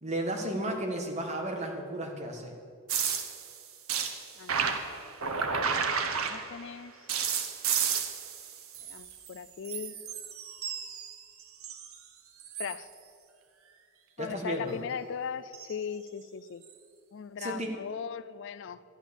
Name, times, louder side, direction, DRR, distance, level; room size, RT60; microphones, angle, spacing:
voice 1, 0.0-2.5 14.2-14.7 17.4-17.7, right 1 dB, 30° right, 2 dB, 1.5 m, -33 dB
sound 1, 2.9-6.7 7.1-9.4 9.6-12.0 12.4-12.8 15.5-15.8 16.6-16.7, right 6 dB, 80° right, 1.1 m, -32 dB
voice 2, 4.4-4.8 6.1-7.1 8.8-10.0 12.6-12.9 14.2-16.6 17.1-18.8, left 7 dB, 55° left, 15 dB, 0.4 m, -39 dB
12.0 x 9.0 x 7.1 m, 2.3 s
head